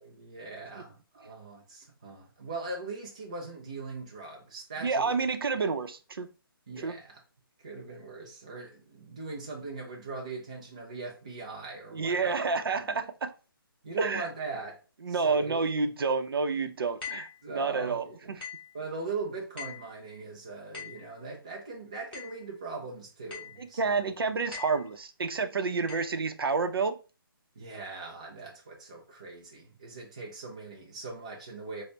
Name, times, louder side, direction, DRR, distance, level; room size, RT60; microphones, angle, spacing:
voice 1, 0.0-5.2 6.7-7.2 7.6-12.4 12.7-13.0 13.8-14.8 15.1-15.7 17.4-18.4 18.7-23.9 27.6-31.8, right 3 dB, 20° right, 0.4 m, -40 dB
voice 2, 4.8-6.3 6.8-6.9 11.9-13.3 14.0-14.3 15.0-18.4 23.6-27.0, right 4 dB, 75° right, 0.5 m, -29 dB
sound 1, 17.0-17.4 18.4-18.7 19.6-19.9 20.7-21.1 22.1-22.4 23.3-23.6 24.5-24.9 25.9-26.1, left 7 dB, 25° left, 1.2 m, -42 dB
3.8 x 2.1 x 3.3 m
hypercardioid pair, 175°, 12 cm